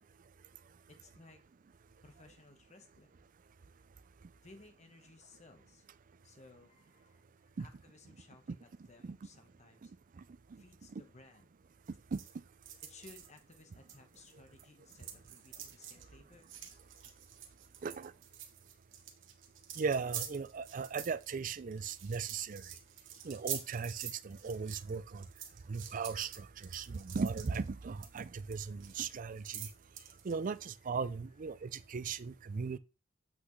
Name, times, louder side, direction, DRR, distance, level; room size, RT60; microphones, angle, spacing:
voice 1, 0.9-1.4 2.0-3.2 4.3-5.8 6.2-9.9 10.6-11.5 12.8-17.0 21.8-21.9 30.8-30.9 31.5-31.7, left 3 dB, 35° left, 1.2 m, -59 dB
sound 1, 11.9-14.6 14.9-30.6, right 10 dB, 75° right, 1.2 m, -47 dB
voice 2, 19.8-22.6 23.2-25.2 25.7-26.5 26.7-29.7 30.2-32.8, right 5 dB, 45° right, 0.4 m, -37 dB
8.0 x 6.0 x 3.2 m
head